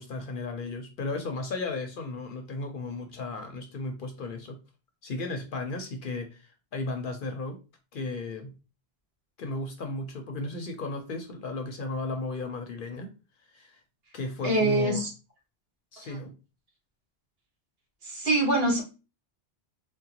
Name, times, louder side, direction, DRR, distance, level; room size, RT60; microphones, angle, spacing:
voice 1, 0.0-4.6 5.0-7.6 7.9-8.5 9.4-13.1 13.4-13.8 14.1-15.0 15.9-16.4, left 2 dB, 60° left, 4 dB, 0.6 m, -35 dB
voice 2, 14.4-15.1 16.0-16.1 18.0-18.8, right 2 dB, 65° right, 1 dB, 1.2 m, -24 dB
3.7 x 2.1 x 2.8 m, 0.31 s
omnidirectional pair, 1.1 m